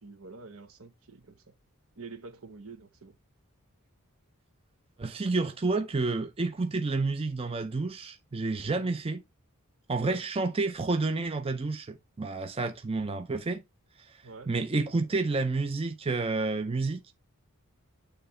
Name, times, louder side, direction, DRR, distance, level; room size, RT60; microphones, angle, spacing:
voice 1, 0.0-1.5 2.0-3.2 8.7-8.9 10.1-10.2 14.2-14.5, right 3 dB, 70° right, 1.1 m, -47 dB
voice 2, 5.0-9.2 9.9-13.6 14.0-17.1, right 3 dB, 25° right, 0.5 m, -30 dB
9.0 x 3.3 x 4.3 m
head